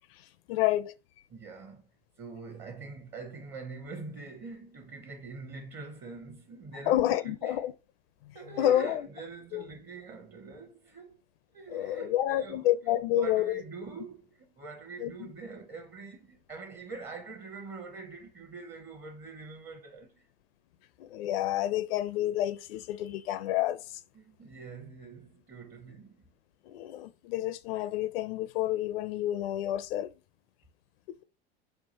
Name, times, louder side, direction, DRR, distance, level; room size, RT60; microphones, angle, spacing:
voice 1, 0.2-0.9 6.9-7.7 8.2-9.0 9.5-9.6 11.7-13.6 15.0-15.1 21.0-24.0 26.7-30.1 31.1-31.2, left 13 dB, 65° left, 0.5 m, -29 dB
voice 2, 1.3-1.9 2.2-7.6 8.3-11.2 11.5-12.6 13.0-20.3 24.1-26.3, right 4 dB, 35° right, 0.9 m, -44 dB
5.7 x 2.4 x 2.8 m
hypercardioid pair, 95°, 32 cm